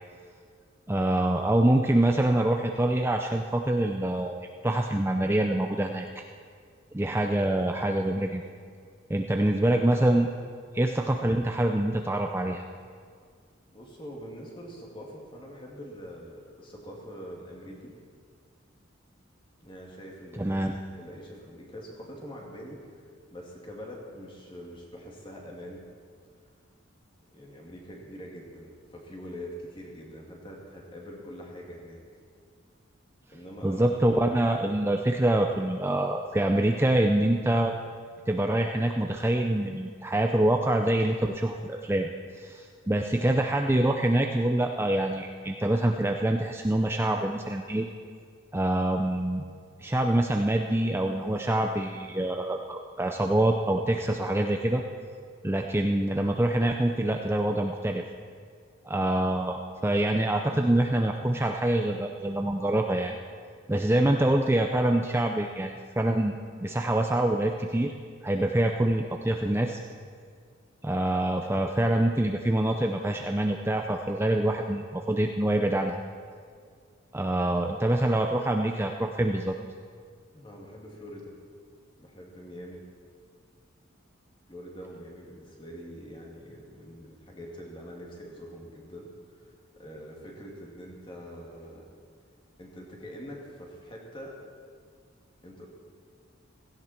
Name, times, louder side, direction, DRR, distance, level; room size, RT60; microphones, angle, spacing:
voice 1, 0.9-6.1 6.9-8.4 9.1-10.3 10.7-12.6 20.3-20.7 33.6-37.7 38.3-42.1 42.3-47.9 48.5-49.4 49.8-54.8 55.4-58.0 58.8-63.1 63.7-66.3 66.6-67.9 68.2-69.8 70.8-76.0 77.1-79.6, right 1 dB, 10° right, 3 dB, 0.5 m, -25 dB
voice 2, 13.7-17.9 19.6-22.9 23.3-25.9 27.3-32.0 33.3-33.9 80.3-81.3 82.0-82.8 84.5-89.5 89.8-91.9 92.6-94.4 95.4-95.7, equal, 25° left, -2 dB, 2.6 m, -44 dB
16.5 x 15.5 x 4.5 m, 2.1 s
head